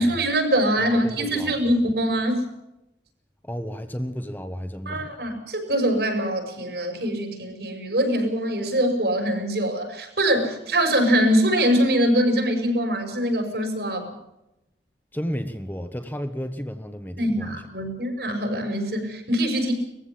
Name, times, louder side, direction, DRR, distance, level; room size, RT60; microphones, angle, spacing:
voice 1, 0.0-2.4 4.9-14.1 17.2-19.7, equal, 70° right, 4 dB, 6.1 m, -23 dB
voice 2, 0.8-1.6 3.5-5.1 15.1-17.5, equal, 10° left, 7 dB, 1.1 m, -32 dB
21.0 x 15.0 x 8.5 m, 0.89 s
head